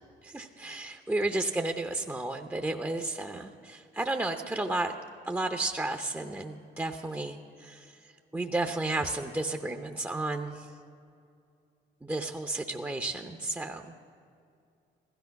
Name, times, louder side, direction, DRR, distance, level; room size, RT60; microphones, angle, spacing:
voice 1, 0.2-4.9 5.2-10.7 12.0-13.9, right 2 dB, 10° right, 4 dB, 0.7 m, -33 dB
15.5 x 13.0 x 5.8 m, 2.5 s
cardioid pair, 90°, 20 cm